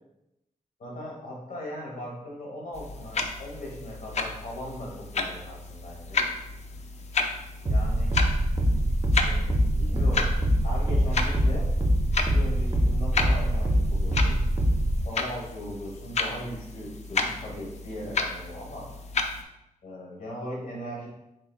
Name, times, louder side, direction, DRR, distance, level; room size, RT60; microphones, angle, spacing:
voice 1, 0.8-6.2 7.7-8.2 9.2-9.5 9.8-10.3 10.6-11.7 12.2-14.4 15.0-18.8 19.8-21.1, equal, 80° left, -3 dB, 1.4 m, -38 dB
sound 1, 2.7-19.4, left 4 dB, 55° left, 0.4 m, -33 dB
sound 2, 7.7-15.0, equal, 30° right, 0.4 m, -24 dB
4.0 x 3.9 x 2.3 m, 0.88 s
wide cardioid pair, 175°, 14 cm